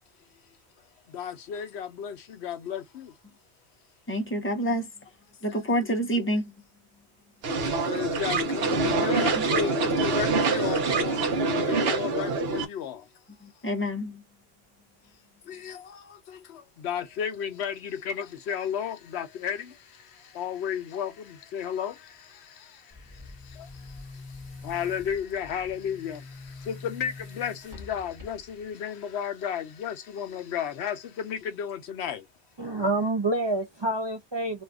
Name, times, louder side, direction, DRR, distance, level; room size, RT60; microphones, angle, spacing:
voice 1, 1.1-3.2 7.6-13.1 15.4-32.3, left 8 dB, 75° left, 0.8 m, -34 dB
voice 2, 4.1-4.9 5.4-6.5 9.4-9.5 13.4-14.2, equal, 15° left, 0.6 m, -28 dB
sound 1, 7.4-12.7, right 3 dB, 65° right, 0.9 m, -25 dB
Boom, 22.9-28.7, left 3 dB, 20° right, 1.0 m, -45 dB
voice 3, 32.6-34.6, right 2 dB, 35° right, 0.5 m, -27 dB
2.6 x 2.4 x 3.4 m
omnidirectional pair, 1.1 m